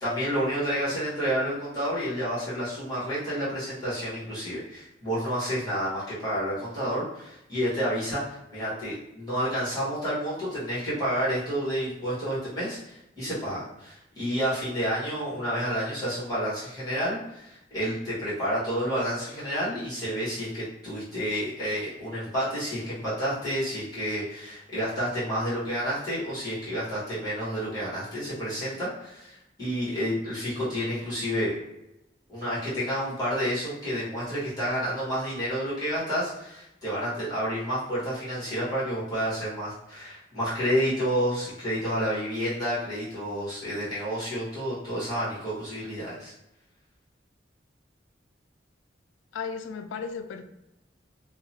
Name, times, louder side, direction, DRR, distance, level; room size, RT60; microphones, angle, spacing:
voice 1, 0.0-31.5 32.3-46.3, equal, 20° left, -10 dB, 1.3 m, -30 dB
voice 2, 49.3-50.4, left 5 dB, 90° left, 8 dB, 0.3 m, -35 dB
2.9 x 2.0 x 2.8 m, 0.89 s
head